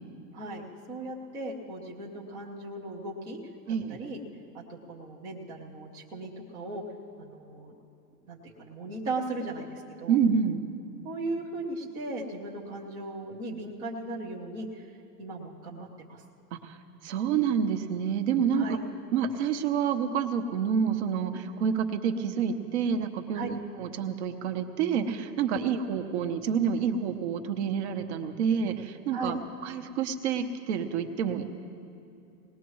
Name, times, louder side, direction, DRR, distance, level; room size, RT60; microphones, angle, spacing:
voice 1, 0.9-3.4 3.7-4.2 4.5-6.8 7.2-7.7 8.3-10.2 11.0-14.9 15.2-16.2 18.5-18.8 23.3-23.5 29.1-29.4, right 2 dB, 10° right, -4 dB, 0.5 m, -37 dB
voice 2, 3.7-4.0 10.1-10.6 16.5-16.8 17.0-18.8 19.1-29.4 29.6-31.4, right 7 dB, 45° right, 7 dB, 1.0 m, -28 dB
20.0 x 19.5 x 3.1 m, 2.8 s
supercardioid pair, 155°, 49 cm